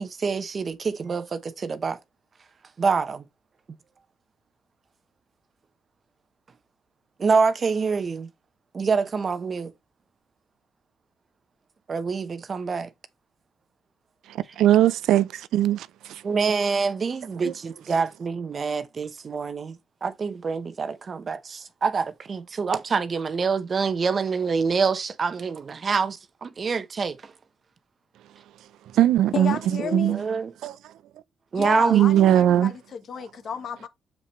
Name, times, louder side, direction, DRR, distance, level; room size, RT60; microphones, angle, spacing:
voice 1, 0.0-2.0 2.8-3.2 7.2-8.3 8.7-9.7 11.9-12.9 16.2-27.3 29.8-30.5 31.5-32.7, right 5 dB, 40° right, 0.8 m, -26 dB
voice 2, 14.3-16.2 17.4-17.5 28.9-30.2 30.6-30.7 31.9-32.7, right 12 dB, 80° right, 0.4 m, -20 dB
voice 3, 29.3-30.2 31.6-33.9, left 7 dB, 55° left, 1.1 m, -32 dB
6.8 x 5.7 x 3.1 m
cardioid pair, 90°, 0 cm